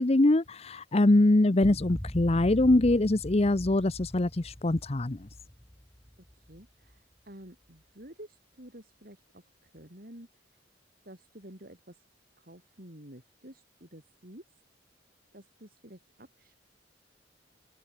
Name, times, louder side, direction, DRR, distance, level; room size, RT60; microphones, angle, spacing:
voice 1, 0.0-5.3, left 2 dB, 35° left, 0.8 m, -23 dB
sound 1, 1.6-7.0, equal, 10° left, 1.5 m, -42 dB
voice 2, 6.3-10.3 11.0-12.0 12.4-14.4 15.3-16.6, right 1 dB, 50° right, 6.4 m, -50 dB
open air
head